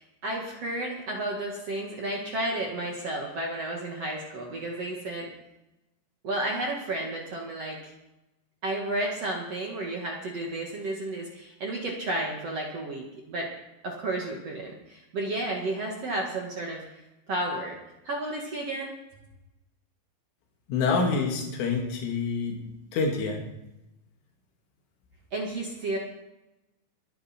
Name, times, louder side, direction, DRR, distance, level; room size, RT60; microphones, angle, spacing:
voice 1, 0.0-5.3 6.2-7.8 8.6-13.5 13.8-16.8 17.3-17.8 18.0-18.9 25.3-26.0, right 1 dB, 50° right, -1 dB, 1.9 m, -32 dB
voice 2, 20.7-22.6 22.9-23.4, left 4 dB, 85° left, 1 dB, 4.8 m, -27 dB
23.0 x 9.7 x 4.4 m, 0.93 s
omnidirectional pair, 5.5 m